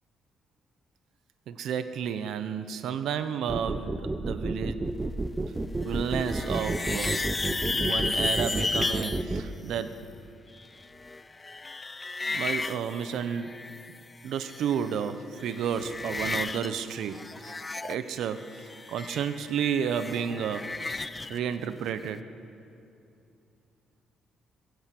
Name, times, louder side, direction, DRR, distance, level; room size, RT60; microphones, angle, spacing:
voice 1, 1.5-4.8 5.8-7.3 7.7-10.1 12.3-13.6 14.2-17.5 17.8-20.7 21.3-22.3, right 8 dB, 80° right, 11 dB, 1.0 m, -32 dB
sound 1, 3.5-9.4, right 2 dB, 20° right, 1.1 m, -30 dB
sound 2, 5.8-9.2 10.6-14.0 14.2-15.1 15.4-16.7 17.0-21.4, left 3 dB, 20° left, 0.7 m, -34 dB
21.0 x 16.0 x 8.5 m, 2.6 s
cardioid pair, 90°, 0 cm